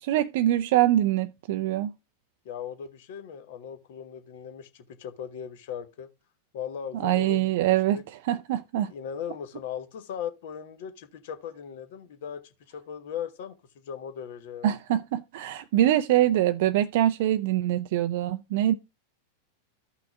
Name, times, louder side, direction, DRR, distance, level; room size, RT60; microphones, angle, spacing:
voice 1, 0.0-1.9 7.0-8.0 8.3-8.9 14.6-18.7, right 13 dB, 50° right, 0.4 m, -24 dB
voice 2, 2.4-6.1 6.5-8.0 8.9-12.4 12.7-14.8, left 8 dB, 55° left, 1.1 m, -38 dB
14.5 x 5.9 x 2.3 m
figure-of-eight pair, 90°, 0 cm